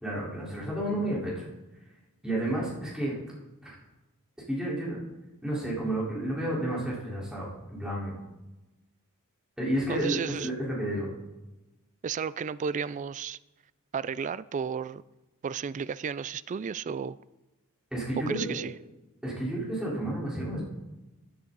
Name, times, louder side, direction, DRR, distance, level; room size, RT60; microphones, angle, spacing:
voice 1, 0.0-1.4 2.2-3.2 3.6-3.7 4.5-5.0 5.4-8.1 9.6-11.1 17.9-18.6 19.2-20.6, right 1 dB, 5° right, 4.1 m, -31 dB
voice 2, 9.9-10.5 12.0-13.4 13.9-15.0 15.4-17.2 18.3-18.7, right 6 dB, 35° right, 0.3 m, -33 dB
15.0 x 10.0 x 4.0 m
head